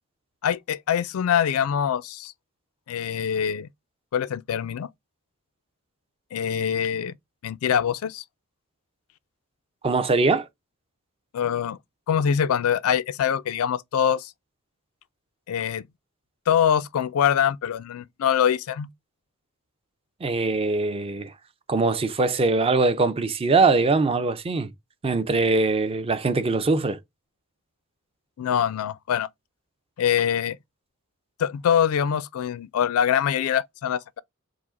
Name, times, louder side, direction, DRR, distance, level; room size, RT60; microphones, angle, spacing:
voice 1, 0.4-2.3 2.9-3.7 4.1-4.9 6.3-7.1 7.4-8.2 11.3-11.8 12.1-14.3 15.5-15.8 16.5-18.9 28.4-29.3 30.0-30.6 31.4-34.2, left 8 dB, 85° left, 0.4 m, -24 dB
voice 2, 9.8-10.5 20.2-21.3 21.7-24.7 25.0-27.0, right 3 dB, 25° right, 0.5 m, -22 dB
4.8 x 2.1 x 3.8 m
head